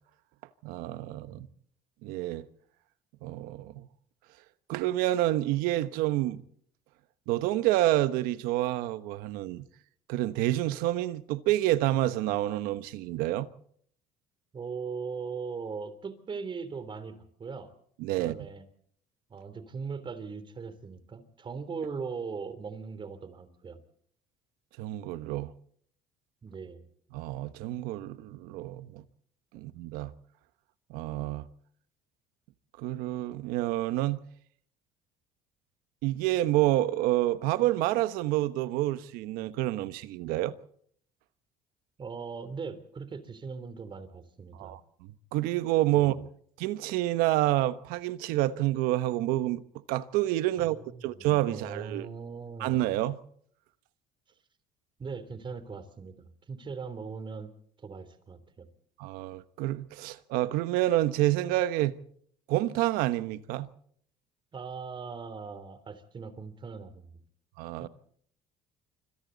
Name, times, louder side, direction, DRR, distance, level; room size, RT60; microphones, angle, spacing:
voice 1, 0.6-1.5 2.0-2.4 3.2-3.8 4.7-6.4 7.3-9.7 10.1-13.5 18.0-18.3 24.8-25.5 27.1-29.0 29.5-30.1 30.9-31.5 32.8-34.2 36.0-40.5 44.5-44.8 45.3-46.3 46.6-49.6 49.9-50.8 51.0-52.1 52.6-53.2 59.0-61.9 62.5-63.7 67.6-67.9, right 15 dB, 85° right, 1.2 m, -28 dB
voice 2, 14.5-17.7 18.1-18.6 19.3-23.8 26.4-26.8 42.0-44.7 45.9-46.2 50.6-52.8 55.0-57.5 57.8-58.7 64.5-67.2 67.8-67.9, right 5 dB, 35° right, 3.4 m, -40 dB
26.5 x 25.5 x 4.1 m
cardioid pair, 110°, 15 cm